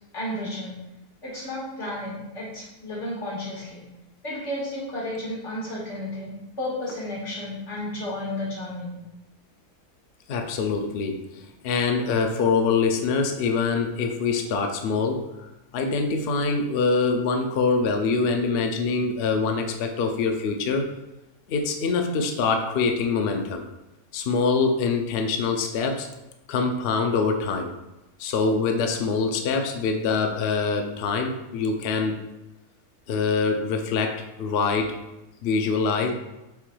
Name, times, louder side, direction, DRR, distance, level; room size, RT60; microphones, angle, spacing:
voice 1, 0.1-0.7 1.2-3.8 4.2-8.9, left 1 dB, 50° left, -7 dB, 2.0 m, -32 dB
voice 2, 10.3-20.9 21.5-23.6 24.1-26.1 26.5-27.7 28.2-32.2 33.1-35.0 35.4-36.1, left 4 dB, 85° left, 4 dB, 0.5 m, -24 dB
6.5 x 3.2 x 2.2 m, 0.96 s
omnidirectional pair, 1.6 m